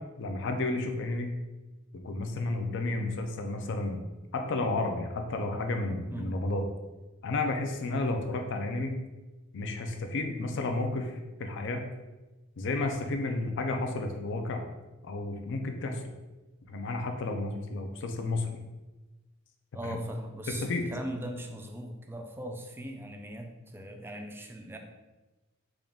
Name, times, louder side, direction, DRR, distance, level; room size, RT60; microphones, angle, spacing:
voice 1, 0.2-1.3 2.0-4.0 4.3-6.6 7.2-9.0 9.5-11.1 11.4-11.8 12.6-14.7 15.0-16.0 16.7-18.5 19.8-20.0 20.5-20.9, left 2 dB, 60° left, 5 dB, 0.4 m, -32 dB
voice 2, 19.7-24.8, right 1 dB, 10° right, 4 dB, 0.3 m, -39 dB
3.6 x 2.3 x 3.5 m, 1.1 s
head